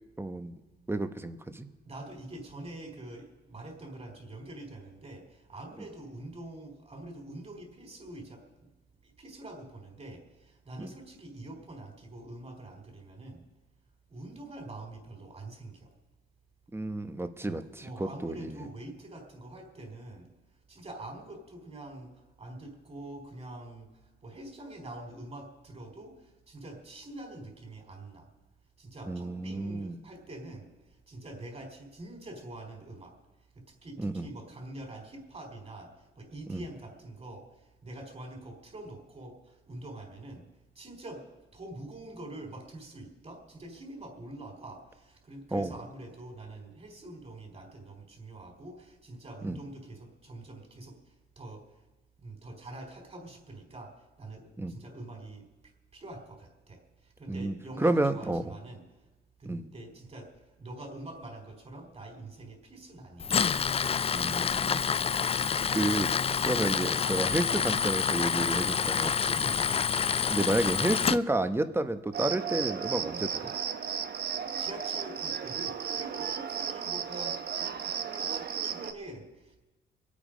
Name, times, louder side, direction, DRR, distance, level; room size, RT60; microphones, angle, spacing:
voice 1, 0.2-0.6 0.9-1.7 10.8-10.9 16.7-18.6 29.1-30.0 34.0-34.3 36.5-36.6 45.5-45.7 49.4-49.6 54.6-54.8 57.3-58.5 59.5-59.7 64.1-64.9 65.7-66.1 66.4-69.4 70.3-73.5, right 2 dB, 10° right, 9 dB, 1.1 m, -31 dB
voice 2, 1.8-8.4 9.0-13.4 14.1-15.9 17.4-20.3 20.7-28.3 28.8-30.7 31.1-33.1 33.5-40.5 40.7-41.2 41.5-51.0 51.4-51.6 52.2-53.9 54.2-55.5 55.9-58.8 59.4-60.3 60.6-63.4 69.3-69.9 74.3-79.6, right 2 dB, 30° right, 3 dB, 4.3 m, -45 dB
Tools, 63.2-71.2, left 6 dB, 30° left, 0.4 m, -28 dB
Cricket, 72.1-78.9, right 7 dB, 55° right, 1.0 m, -34 dB
24.0 x 8.7 x 5.2 m, 1.1 s
cardioid pair, 90°, 20 cm